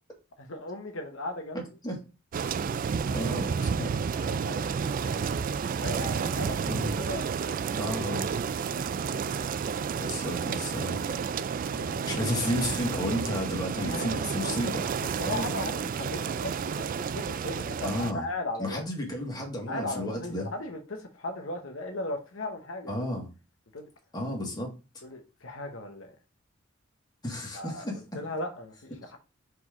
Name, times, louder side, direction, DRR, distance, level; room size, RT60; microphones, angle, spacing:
voice 1, 0.4-1.6 3.1-3.9 4.2-5.4 5.7-8.0 8.4-9.4 10.0-10.1 11.5-12.1 13.8-14.6 15.2-18.8 19.7-23.1 23.7-23.9 25.0-26.1 27.5-27.9 28.1-29.2, left 2 dB, 80° left, 1.0 m, -38 dB
sound 1, 2.3-18.1, right 6 dB, 45° right, 0.3 m, -31 dB
voice 2, 3.1-3.9 6.6-6.9 7.8-8.3 9.9-11.0 11.7-14.9 15.2-15.6 17.8-18.2 18.6-20.5 22.9-23.3 24.1-24.7 27.2-28.0, left 1 dB, 20° left, 2.0 m, -32 dB
4.8 x 4.0 x 5.0 m
head